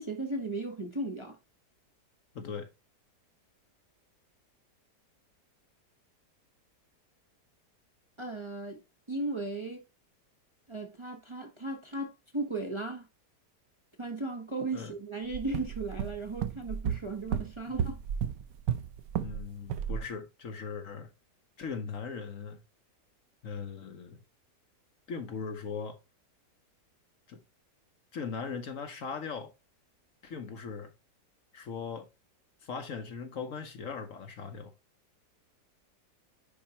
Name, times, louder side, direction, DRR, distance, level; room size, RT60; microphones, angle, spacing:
voice 1, 0.0-1.4 8.2-8.8 9.1-9.8 10.7-13.1 14.0-18.0, right 2 dB, 20° right, 1.0 m, -36 dB
voice 2, 2.3-2.7 14.7-14.9 19.2-21.1 21.6-22.6 23.4-24.2 25.1-26.0 27.3-27.4 28.1-29.5 30.2-30.9 31.5-32.1 32.6-34.7, left 5 dB, 55° left, 1.1 m, -39 dB
sound 1, 15.3-19.4 19.7-20.0, right 8 dB, 70° right, 1.0 m, -33 dB
10.0 x 4.3 x 2.9 m
omnidirectional pair, 1.8 m